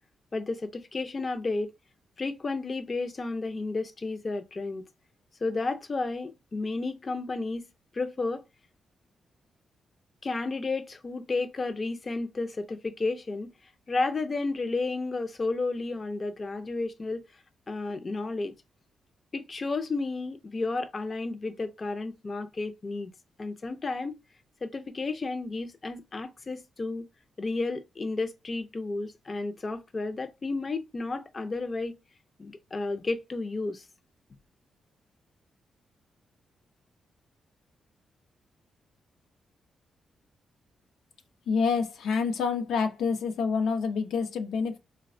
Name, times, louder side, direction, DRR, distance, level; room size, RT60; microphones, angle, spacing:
voice 1, 0.3-1.7 2.2-4.9 5.4-7.7 7.9-8.4 10.2-13.5 13.9-17.2 17.7-18.5 19.3-23.1 23.4-24.2 24.6-27.1 27.4-31.9 32.4-33.8, left 3 dB, 30° left, 0.4 m, -32 dB
voice 2, 41.5-44.8, left 5 dB, 85° left, 0.5 m, -27 dB
4.0 x 2.1 x 2.5 m
cardioid pair, 110°, 0 cm